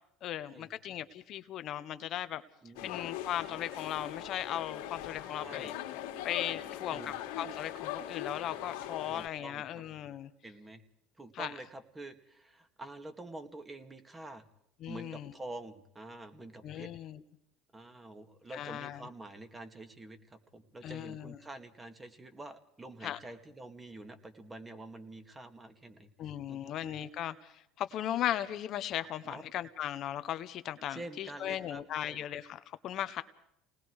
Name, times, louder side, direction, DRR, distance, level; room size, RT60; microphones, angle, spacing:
voice 1, 0.2-2.4 2.8-5.7 6.2-10.3 11.3-11.5 14.8-15.3 16.6-17.2 18.5-19.0 20.8-21.4 23.0-23.2 26.2-27.5 27.8-33.2, left 11 dB, 55° left, 11 dB, 1.0 m, -37 dB
voice 2, 2.6-2.9 5.3-5.7 6.9-7.1 9.1-9.8 10.4-10.8 11.2-14.4 14.9-16.9 17.7-26.1 26.5-26.8 29.3-29.4 30.9-32.2, right 2 dB, 15° right, 7 dB, 2.2 m, -47 dB
sound 1, 2.7-9.3, left 11 dB, 80° left, 2.2 m, -41 dB
28.5 x 19.5 x 4.8 m, 0.75 s
supercardioid pair, 105°, 0 cm